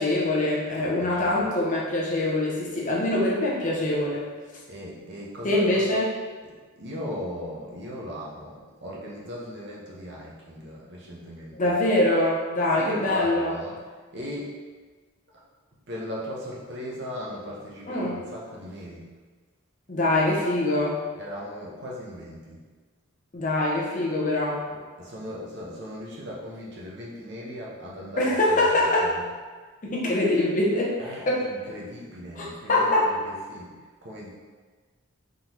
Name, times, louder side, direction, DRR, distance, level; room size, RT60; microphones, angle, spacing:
voice 1, 0.0-4.3 5.4-6.1 11.6-13.5 17.9-18.2 19.9-21.0 23.3-24.7 28.2-29.2 29.8-31.0 31.3-31.4 32.4-33.1, left 1 dB, 35° left, -3 dB, 0.7 m, -24 dB
voice 2, 0.8-1.5 4.7-6.0 6.4-11.7 12.8-13.8 14.1-14.6 15.9-19.1 21.2-22.6 24.7-29.3 31.0-34.3, equal, 50° right, -4 dB, 0.9 m, -38 dB
3.9 x 3.8 x 3.0 m, 1.4 s
head